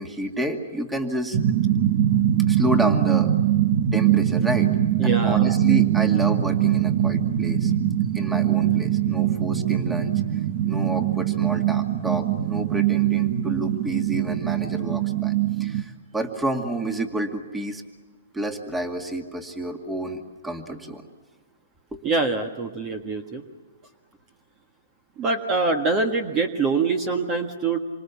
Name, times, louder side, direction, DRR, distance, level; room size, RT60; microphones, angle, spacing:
voice 1, 0.0-1.4 2.5-3.3 3.9-4.7 5.0-7.7 8.1-10.1 10.6-15.3 15.6-17.8 18.3-21.1 21.9-22.0, right 1 dB, 5° right, 5 dB, 2.2 m, -29 dB
sound 1, 1.3-15.8, right 11 dB, 45° right, 1.7 m, -22 dB
voice 2, 5.0-5.5 22.0-23.4 25.2-27.8, right 3 dB, 25° right, 5 dB, 1.7 m, -24 dB
27.0 x 25.0 x 7.2 m, 1.3 s
hypercardioid pair, 145°, 0 cm